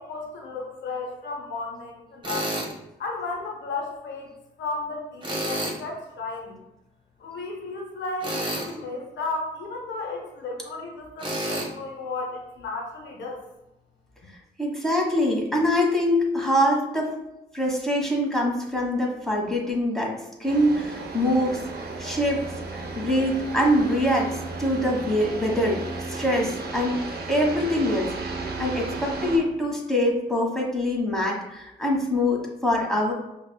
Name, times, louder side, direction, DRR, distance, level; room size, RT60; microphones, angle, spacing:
voice 1, 0.0-2.5 3.0-4.3 4.6-6.6 7.2-13.4, left 3 dB, 70° left, 0 dB, 0.8 m, -34 dB
Tools, 2.2-2.7 5.2-5.8 8.2-8.7 11.2-11.7, right 1 dB, 25° right, 1.4 m, -29 dB
voice 2, 14.6-17.1 17.5-21.6 22.0-22.4 22.7-25.8 26.1-27.0 27.3-33.1, left 1 dB, ahead, -3 dB, 1.3 m, -24 dB
sound 1, 20.5-29.4, right 3 dB, 55° right, 0.8 m, -34 dB
5.2 x 2.3 x 2.3 m, 0.91 s
supercardioid pair, 45°, 19 cm